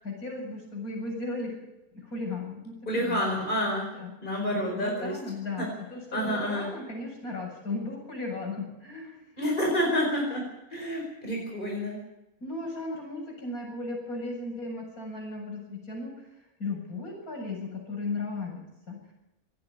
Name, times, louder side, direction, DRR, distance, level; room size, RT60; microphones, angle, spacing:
voice 1, 0.0-1.6 1.9-3.4 3.9-4.1 4.5-9.3 12.4-16.1 16.6-19.0, left 3 dB, 90° left, 0 dB, 8.2 m, -36 dB
voice 2, 2.9-3.8 4.2-5.1 5.6-5.7 6.1-6.7 9.4-10.4 10.7-12.0, equal, 35° left, 0 dB, 5.2 m, -28 dB
25.5 x 10.5 x 9.9 m, 0.95 s
omnidirectional pair, 1.5 m